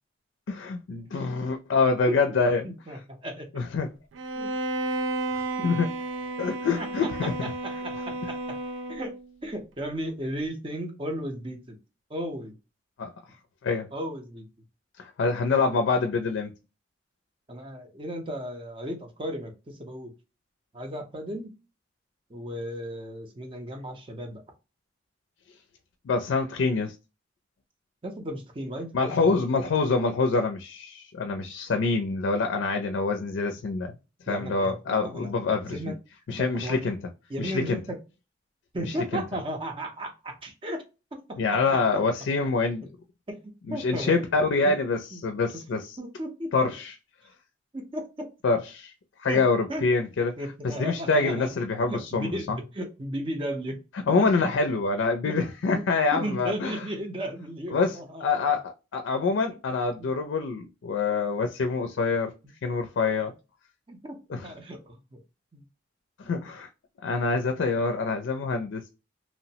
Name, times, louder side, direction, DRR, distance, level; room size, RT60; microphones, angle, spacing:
voice 1, 0.5-2.7 3.5-3.9 5.3-5.9 6.4-7.3 13.0-13.1 13.6-13.9 15.0-16.5 26.1-26.9 28.9-33.9 34.3-35.9 36.3-37.0 37.4-37.8 38.8-39.2 41.4-42.9 43.7-46.0 46.5-46.9 48.4-48.9 49.2-50.3 50.6-52.6 53.9-56.8 57.7-62.3 62.6-63.3 64.3-64.5 66.2-66.7 67.0-68.8, left 4 dB, 85° left, 0.4 m, -26 dB
voice 2, 2.6-3.5 4.4-4.5 5.6-5.7 6.8-8.6 8.9-9.1 9.4-11.8 12.1-12.5 13.9-14.5 17.5-20.1 20.7-21.5 22.3-24.4 28.0-29.4 34.3-35.3 35.7-35.9 36.4-36.8 37.3-38.0 38.7-40.8 41.1-41.6 41.9-42.0 43.3-43.4 43.7-44.2 44.6-44.7 45.1-45.2 46.0-46.7 47.7-48.3 49.3-49.4 49.7-49.9 50.4-51.5 51.9-53.8 54.2-54.5 55.2-55.4 55.7-55.8 56.1-58.6 60.0-60.1 63.9-64.2 64.4-65.2 65.5-65.6, equal, 30° right, 0.6 m, -35 dB
Bowed string instrument, 4.1-9.3, right 2 dB, 85° right, 0.4 m, -32 dB
3.0 x 2.0 x 2.7 m
head